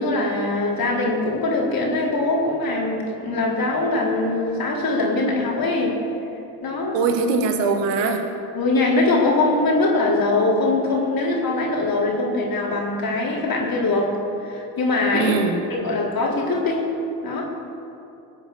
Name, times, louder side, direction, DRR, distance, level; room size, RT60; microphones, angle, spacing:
voice 1, 0.0-6.0 6.6-7.0 8.5-14.1 14.4-15.3 15.7-16.9 17.2-17.4, left 2 dB, 50° left, -2 dB, 4.3 m, -22 dB
voice 2, 6.9-8.2 15.1-15.6, right 4 dB, 75° right, 4 dB, 1.9 m, -21 dB
22.5 x 8.2 x 7.2 m, 2.9 s
hypercardioid pair, 50°, 43 cm